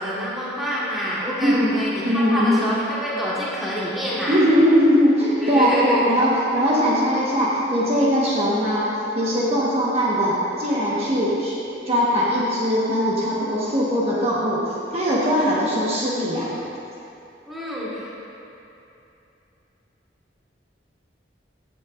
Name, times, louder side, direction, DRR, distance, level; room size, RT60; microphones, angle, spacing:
voice 1, 0.0-4.4 5.4-6.1 17.5-18.1, equal, ahead, -9 dB, 1.6 m, -26 dB
voice 2, 1.4-2.6 4.3-8.9 9.1-11.5 11.9-16.5, equal, 35° right, -7 dB, 1.3 m, -20 dB
15.0 x 7.2 x 2.5 m, 2.8 s
head